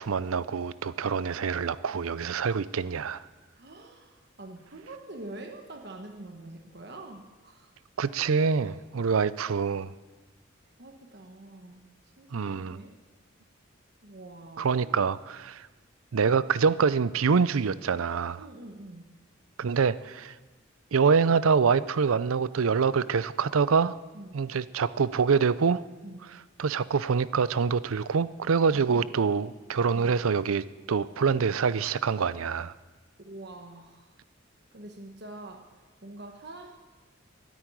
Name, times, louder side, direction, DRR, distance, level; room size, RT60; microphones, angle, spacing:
voice 1, 0.0-3.2 8.0-9.9 12.3-12.8 14.6-15.7 16.1-18.5 19.6-20.3 20.9-24.0 24.3-25.8 26.6-32.7, right 5 dB, 90° right, 17 dB, 0.5 m, -25 dB
voice 2, 3.5-7.7 10.8-11.8 12.2-12.9 14.0-15.0 18.4-19.1 24.1-24.4 26.0-26.3 33.2-34.1 34.7-35.6 36.0-36.7, right 2 dB, 50° right, 2 dB, 1.2 m, -45 dB
12.5 x 9.5 x 9.8 m, 1.3 s
head